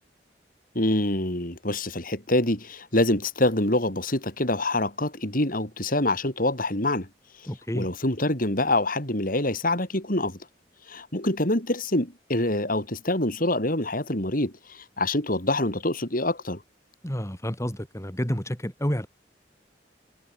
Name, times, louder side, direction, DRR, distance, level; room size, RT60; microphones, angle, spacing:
voice 1, 0.8-7.1 7.4-7.5 7.7-10.4 10.9-16.6, left 1 dB, 50° left, 6.9 m, -25 dB
voice 2, 7.5-7.9 17.0-19.1, equal, 15° left, 4.5 m, -29 dB
head